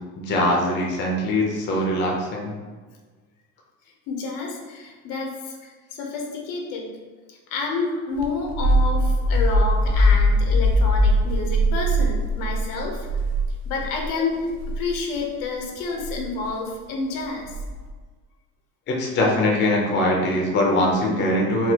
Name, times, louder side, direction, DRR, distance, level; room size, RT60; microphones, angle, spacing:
voice 1, 0.2-2.5 18.9-21.7, left 1 dB, 35° left, -2 dB, 0.5 m, -22 dB
voice 2, 4.1-6.9 7.3-13.1 13.6-14.5 14.8-17.5, left 3 dB, 90° left, 1 dB, 0.8 m, -29 dB
sound 1, 8.2-14.1 14.5-14.8 16.0-16.3 17.5-17.9, equal, 75° right, 0.6 m, -21 dB
4.1 x 2.3 x 2.8 m, 1.4 s
cardioid pair, 170°, 33 cm